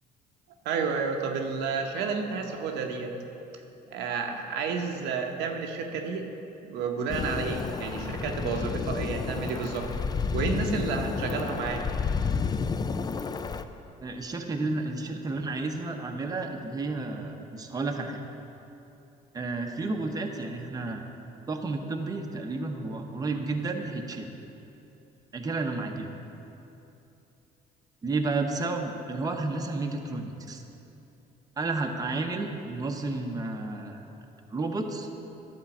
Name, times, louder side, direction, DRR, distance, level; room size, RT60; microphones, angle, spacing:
voice 1, 0.6-3.1 3.9-6.3 6.6-9.9 10.3-11.8 14.6-14.7, right 5 dB, 90° right, 3 dB, 0.9 m, -31 dB
sound 1, 7.1-13.6, left 5 dB, 25° left, 0.4 m, -31 dB
voice 2, 14.0-18.2 19.3-21.1 21.5-24.3 25.3-26.1 28.0-30.6 31.6-34.0 34.5-35.1, right 3 dB, 20° right, 3 dB, 0.8 m, -31 dB
11.0 x 4.5 x 7.1 m, 2.8 s
cardioid pair, 110°, 17 cm